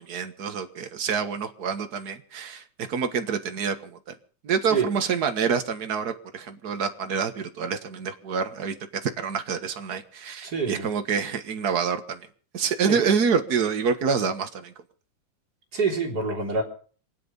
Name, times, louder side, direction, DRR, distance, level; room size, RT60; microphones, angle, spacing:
voice 1, 0.0-4.0 4.4-8.7 9.0-12.2 12.5-14.7, right 6 dB, 50° right, 8 dB, 1.2 m, -27 dB
voice 2, 10.4-10.9 12.8-13.0 15.7-16.6, right 4 dB, 30° right, 0 dB, 3.9 m, -26 dB
27.0 x 9.5 x 5.4 m, 0.43 s
omnidirectional pair, 3.7 m